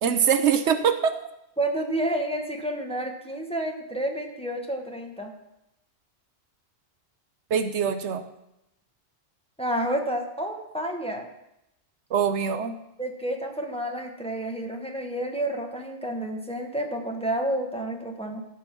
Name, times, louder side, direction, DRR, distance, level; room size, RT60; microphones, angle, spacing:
voice 1, 0.0-1.1 7.5-8.2 12.1-12.8, right 7 dB, 75° right, 9 dB, 1.0 m, -23 dB
voice 2, 1.6-5.3 9.6-11.3 13.0-18.4, right 1 dB, 5° left, 2 dB, 1.3 m, -30 dB
14.0 x 5.3 x 6.0 m, 0.86 s
omnidirectional pair, 1.2 m